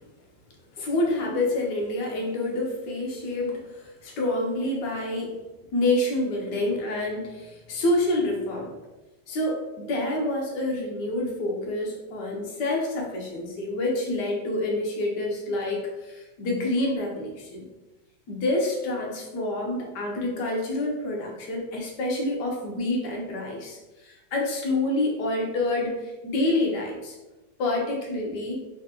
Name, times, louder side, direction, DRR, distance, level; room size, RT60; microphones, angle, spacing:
voice 1, 0.8-5.4 5.7-8.7 9.3-17.7 18.3-27.2 27.6-28.6, left 2 dB, 70° left, 0 dB, 1.3 m, -27 dB
3.5 x 3.3 x 2.8 m, 1.1 s
omnidirectional pair, 2.0 m